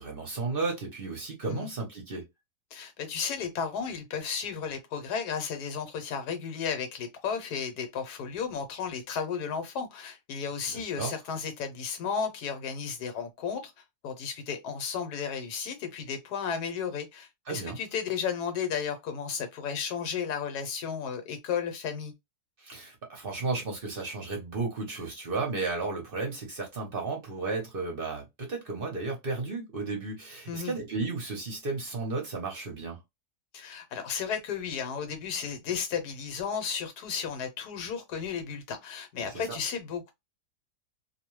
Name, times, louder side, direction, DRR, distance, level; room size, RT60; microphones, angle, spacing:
voice 1, 0.0-2.3 10.7-11.1 17.5-17.8 22.6-33.0 39.2-39.6, right 3 dB, 45° right, 0.8 m, -34 dB
voice 2, 2.7-13.7 14.0-22.1 30.5-30.7 33.5-40.1, left 6 dB, 85° left, 1.3 m, -33 dB
2.7 x 2.2 x 3.0 m
omnidirectional pair, 1.7 m